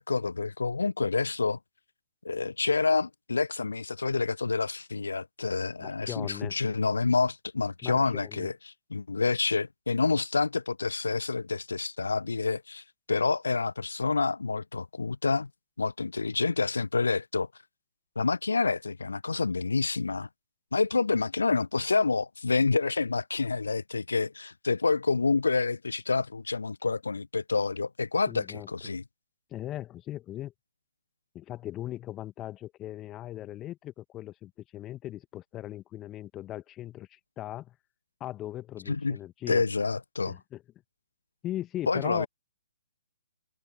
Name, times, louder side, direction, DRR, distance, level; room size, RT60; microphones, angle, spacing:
voice 1, 0.0-1.6 2.2-8.5 8.9-15.5 15.8-17.5 18.2-20.3 20.7-29.0 38.9-39.2 39.5-40.4 41.9-42.3, left 4 dB, 70° left, 0.8 m, -28 dB
voice 2, 5.8-6.5 7.8-8.5 28.3-28.7 29.5-30.5 31.3-37.7 38.2-39.6 40.3-40.6 41.4-42.3, left 13 dB, 20° left, 1.7 m, -39 dB
figure-of-eight pair, 130°, 0 cm